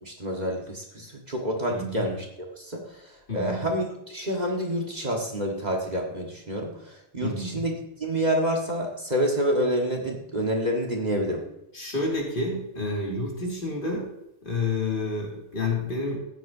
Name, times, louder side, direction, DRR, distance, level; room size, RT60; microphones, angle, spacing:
voice 1, 0.0-2.2 2.6-2.8 3.3-6.8 7.1-7.7 8.0-11.4, equal, 40° right, 0 dB, 1.6 m, -27 dB
voice 2, 1.7-2.1 3.3-3.7 7.2-7.6 11.7-14.1 14.4-16.2, left 2 dB, 50° left, -2 dB, 2.6 m, -29 dB
14.0 x 10.0 x 2.7 m, 0.83 s
omnidirectional pair, 1.2 m